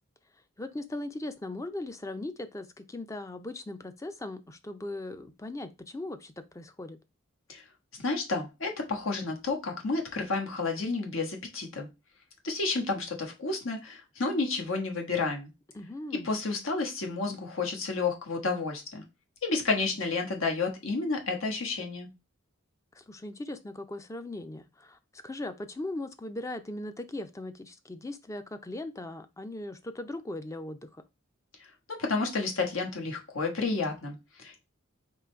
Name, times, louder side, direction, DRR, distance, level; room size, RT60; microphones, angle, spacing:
voice 1, 0.6-7.0 15.7-16.3 22.9-31.0, left 2 dB, 15° left, 0.4 m, -39 dB
voice 2, 7.9-11.9 12.4-15.5 16.2-19.0 19.4-22.1 31.9-34.6, left 3 dB, 85° left, 1.2 m, -31 dB
3.8 x 3.1 x 4.3 m
head